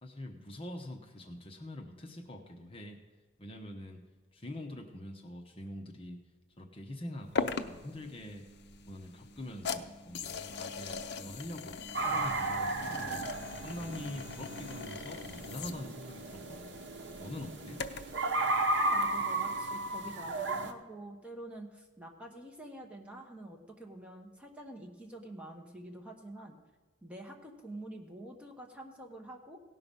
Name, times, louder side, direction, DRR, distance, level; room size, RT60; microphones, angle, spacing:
voice 1, 0.0-3.0 3.4-4.0 4.3-6.2 6.6-8.4 8.9-11.8 12.0-13.4 13.6-16.7 17.2-17.8, left 1 dB, 30° left, 2 dB, 0.9 m, -44 dB
sound 1, 7.4-18.2, left 4 dB, 60° left, 0.6 m, -41 dB
sound 2, 11.9-20.7, right 2 dB, 65° right, 1.0 m, -34 dB
voice 2, 18.9-26.6 27.0-29.6, right 1 dB, 5° right, 1 dB, 1.2 m, -47 dB
17.5 x 5.8 x 5.3 m, 1.3 s
head